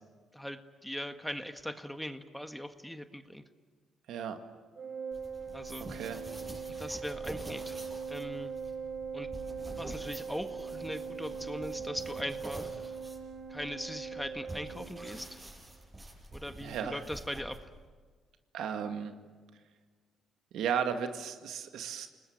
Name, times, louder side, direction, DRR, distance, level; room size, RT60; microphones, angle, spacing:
voice 1, 0.3-3.4 5.5-5.9 6.8-7.8 8.1-8.5 9.1-9.3 9.8-13.0 13.5-15.4 16.3-17.7, equal, 5° left, 8 dB, 1.6 m, -40 dB
voice 2, 4.1-4.4 5.9-6.2 16.6-17.0 18.5-19.1 20.5-22.1, right 7 dB, 80° right, 6 dB, 2.1 m, -34 dB
Organ, 4.8-15.5, right 6 dB, 55° right, 1.3 m, -41 dB
sound 1, 5.1-17.9, right 1 dB, 20° right, 7.3 m, -47 dB
29.5 x 20.0 x 8.8 m, 1.5 s
cardioid pair, 90°, 0 cm